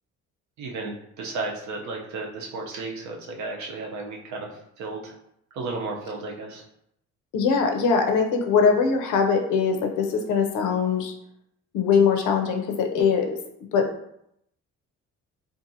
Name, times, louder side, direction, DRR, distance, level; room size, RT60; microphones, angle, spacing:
voice 1, 0.6-5.2 5.5-6.6, right 3 dB, 70° right, 0 dB, 0.7 m, -34 dB
voice 2, 7.3-11.1 11.7-13.4 13.7-13.9, left 5 dB, 80° left, 4 dB, 0.6 m, -22 dB
2.6 x 2.4 x 2.7 m, 0.76 s
cardioid pair, 90°, 30 cm